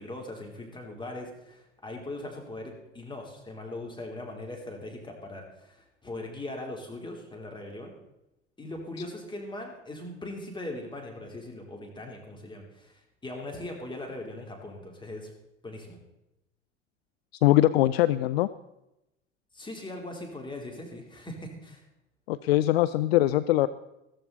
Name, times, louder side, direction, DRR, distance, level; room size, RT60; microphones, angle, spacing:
voice 1, 0.0-7.9 8.6-15.3 15.6-16.0 19.5-21.8, left 1 dB, 15° left, 1 dB, 3.5 m, -40 dB
voice 2, 17.4-18.5 22.3-23.7, left 15 dB, 60° left, 15 dB, 0.5 m, -22 dB
14.5 x 14.0 x 4.1 m, 0.90 s
figure-of-eight pair, 70°, 35 cm